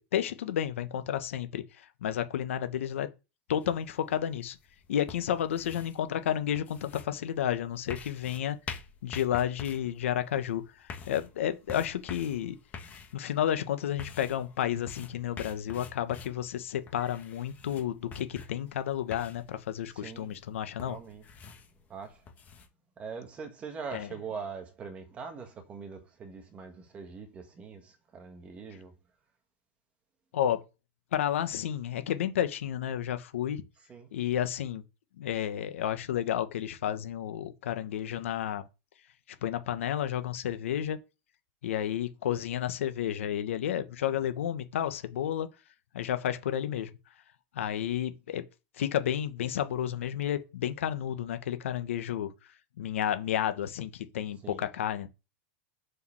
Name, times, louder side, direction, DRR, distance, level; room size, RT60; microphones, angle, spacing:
voice 1, 0.0-3.1 3.5-4.6 4.9-8.6 9.0-12.6 13.1-21.0 23.9-24.1 30.3-30.6 31.1-33.6 34.1-34.8 35.2-38.6 39.4-41.0 41.6-45.5 45.9-46.9 47.5-48.4 48.8-52.3 52.8-55.1, left 10 dB, 90° left, 1.3 m, -31 dB
sound 1, 3.6-22.7, left 5 dB, 25° left, 1.4 m, -47 dB
voice 2, 19.9-20.3 20.8-21.3 21.9-22.3 23.0-28.9 33.9-34.1 54.4-54.7, right 5 dB, 20° right, 1.6 m, -42 dB
6.6 x 4.9 x 6.3 m
supercardioid pair, 160°, 7 cm